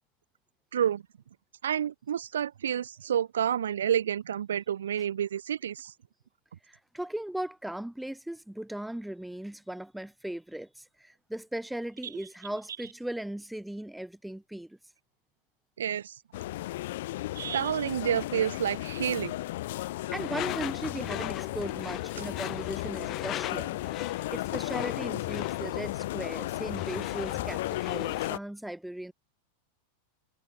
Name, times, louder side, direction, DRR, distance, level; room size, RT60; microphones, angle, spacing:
voice 1, 0.7-1.0 1.6-5.9 15.8-16.2 17.3-19.4, right 9 dB, 65° right, 3.0 m, -29 dB
voice 2, 6.7-14.8 20.1-23.8 24.3-29.1, right 1 dB, 5° right, 7.4 m, -38 dB
sound 1, 16.3-28.4, left 16 dB, 55° left, 0.8 m, -35 dB
Door / Screech, 20.2-28.4, left 14 dB, 35° left, 4.3 m, -40 dB
figure-of-eight pair, 90°, 0 cm